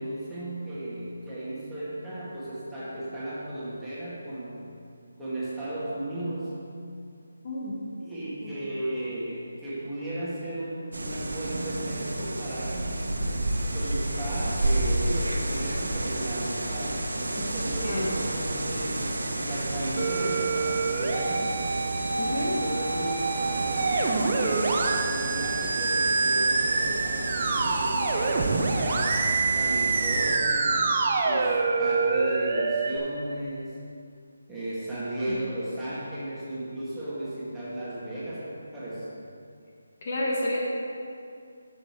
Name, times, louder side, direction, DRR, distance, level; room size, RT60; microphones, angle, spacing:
voice 1, 0.0-4.7 5.2-6.5 8.0-12.8 13.7-19.1 19.4-21.6 22.2-24.0 24.9-29.2 29.5-33.8 34.5-39.1, right 1 dB, 5° right, -12 dB, 1.9 m, -35 dB
voice 2, 7.4-7.8 8.4-8.5 17.8-18.2 22.2-22.6 35.3-35.4 40.0-40.7, left 1 dB, 40° left, -4 dB, 1.5 m, -30 dB
sound 1, 10.9-30.4, right 1 dB, 80° right, 1.2 m, -31 dB
Musical instrument, 20.0-33.0, right 4 dB, 35° right, 0.7 m, -26 dB
9.1 x 6.5 x 4.6 m, 2.4 s
figure-of-eight pair, 165°, 0 cm